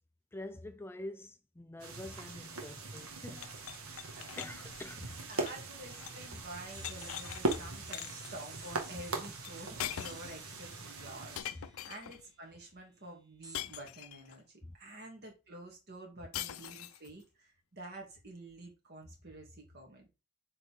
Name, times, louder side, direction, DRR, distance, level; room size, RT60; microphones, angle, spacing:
voice 1, 0.3-3.5 4.4-5.2 6.3-6.4 14.6-14.8, left 1 dB, 10° left, 0.3 m, -46 dB
sound 1, 1.8-11.4, right 2 dB, 85° right, 1.6 m, -41 dB
sound 2, 3.4-6.3 6.5-7.6 7.9-8.3 9.4-9.5 9.8-10.4 11.4-12.2 13.5-14.4 16.3-17.1, left 11 dB, 75° left, 0.5 m, -43 dB
voice 2, 4.1-4.4 5.3-20.1, right 1 dB, 50° right, 2.4 m, -49 dB
sound 3, 6.7-12.4 13.4-13.6, right 2 dB, 15° right, 1.2 m, -54 dB
7.7 x 4.1 x 3.5 m
head